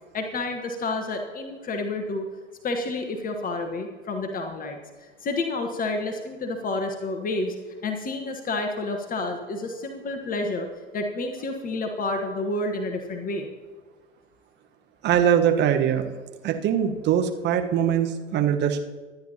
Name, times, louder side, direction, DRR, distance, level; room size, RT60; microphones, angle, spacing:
voice 1, 0.1-2.2 2.6-7.5 7.8-10.7 10.9-13.5, left 2 dB, 20° left, 5 dB, 1.3 m, -29 dB
voice 2, 15.0-16.1 16.4-18.8, right 9 dB, 30° right, 5 dB, 1.2 m, -22 dB
24.5 x 10.5 x 2.8 m, 1.4 s
figure-of-eight pair, 90°, 38 cm